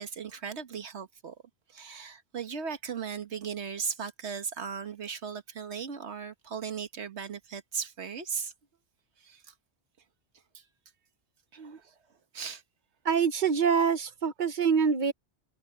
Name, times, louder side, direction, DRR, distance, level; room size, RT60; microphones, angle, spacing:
voice 1, 0.0-1.4 1.7-8.5 9.2-9.5 10.5-10.6 11.5-11.8 12.3-12.6, right 6 dB, 85° right, 1.6 m, -37 dB
voice 2, 13.0-15.1, right 6 dB, 50° right, 1.0 m, -25 dB
omnidirectional pair, 1.1 m